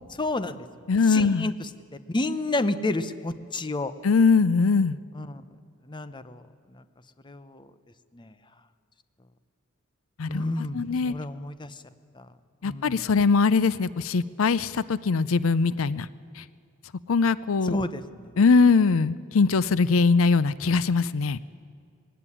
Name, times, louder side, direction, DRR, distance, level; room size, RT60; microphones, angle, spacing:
voice 1, 0.1-0.6 1.1-1.7 2.1-3.9 5.1-5.4 5.9-6.8 7.2-7.7 8.1-8.3 10.3-11.8 12.1-12.3 12.6-13.1 17.6-18.3, left 2 dB, 25° left, 12 dB, 0.8 m, -31 dB
voice 2, 0.9-1.5 4.0-5.0 10.2-10.4 10.7-11.1 12.6-16.1 16.4-16.5 17.1-17.8 18.4-21.4, left 4 dB, 80° left, 18 dB, 0.5 m, -21 dB
21.0 x 17.0 x 9.9 m, 2.3 s
head